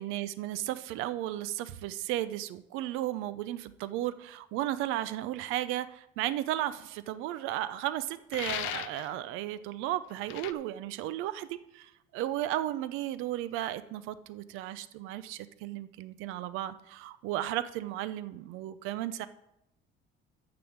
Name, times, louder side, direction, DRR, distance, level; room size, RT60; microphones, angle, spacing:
voice 1, 0.0-19.3, right 13 dB, 80° right, 14 dB, 0.5 m, -34 dB
sound 1, 8.3-9.1 10.3-10.5, left 15 dB, 75° left, 0.5 m, -36 dB
6.9 x 6.9 x 7.1 m, 0.83 s
cardioid pair, 165°, 20 cm